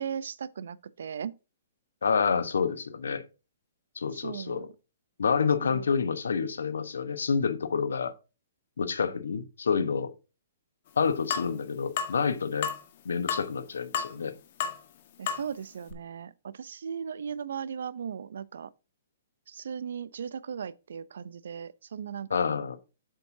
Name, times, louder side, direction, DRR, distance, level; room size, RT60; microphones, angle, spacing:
voice 1, 0.0-1.3 4.2-4.7 5.6-5.9 15.2-18.7 19.5-22.4, right 7 dB, 70° right, 0.6 m, -37 dB
voice 2, 2.0-3.2 4.0-4.7 5.2-8.1 8.8-10.1 11.0-12.7 13.0-14.3 22.3-22.8, left 6 dB, 75° left, 1.0 m, -28 dB
sound 1, 11.3-11.5 12.0-12.1 12.6-12.8 13.3-13.5 13.9-14.3 14.6-14.8 15.3-15.4 15.9-16.0, left 7 dB, 50° left, 1.3 m, -30 dB
7.5 x 7.0 x 2.7 m
hypercardioid pair, 125°, 0 cm